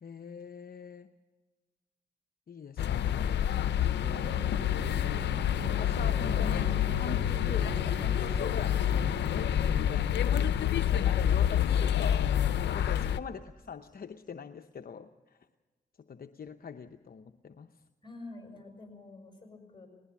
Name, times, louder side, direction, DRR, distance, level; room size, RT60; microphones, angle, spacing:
voice 1, 0.0-1.1 2.5-3.3 5.4-9.3 9.7-10.1 10.8-12.3 12.7-15.1 16.1-17.7, left 6 dB, 60° left, 7 dB, 0.9 m, -43 dB
sound 1, 2.8-13.2, left 10 dB, 90° left, 0.6 m, -28 dB
voice 2, 3.4-4.0 18.0-19.9, left 2 dB, 25° left, 4 dB, 6.7 m, -49 dB
sound 2, 4.0-9.8, right 7 dB, 50° right, 0.6 m, -44 dB
19.5 x 19.0 x 7.1 m, 1.3 s
cardioid pair, 55°, 18 cm